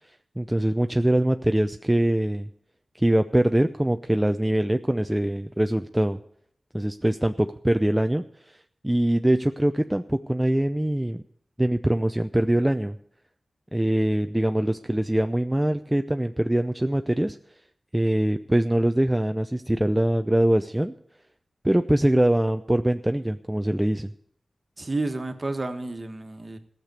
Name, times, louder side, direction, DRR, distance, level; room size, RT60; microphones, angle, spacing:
voice 1, 0.4-2.5 2.9-6.2 6.7-8.6 8.8-11.2 11.6-13.0 13.7-17.4 17.9-20.9 21.6-24.1, right 1 dB, 10° right, 7 dB, 0.5 m, -23 dB
voice 2, 24.8-26.6, right 2 dB, 40° right, 6 dB, 1.5 m, -30 dB
14.5 x 6.7 x 9.2 m, 0.67 s
cardioid pair, 55°, 0 cm